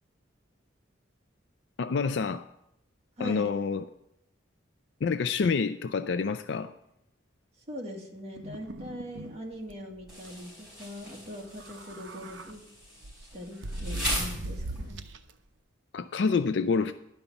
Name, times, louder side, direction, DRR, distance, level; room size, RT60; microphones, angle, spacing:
voice 1, 1.8-2.4 3.2-3.8 5.0-6.7 15.9-16.9, left 5 dB, 60° left, 11 dB, 0.4 m, -27 dB
voice 2, 3.2-3.5 7.7-12.7 13.2-15.0, equal, 30° right, -1 dB, 1.8 m, -41 dB
sound 1, 8.4-9.4 9.7-9.8 10.1-10.3 11.5-12.5 13.0-15.3, right 1 dB, 70° right, 0.7 m, -38 dB
Insect, 10.1-15.1, equal, 5° right, 5.0 m, -39 dB
11.5 x 5.4 x 7.0 m, 0.81 s
head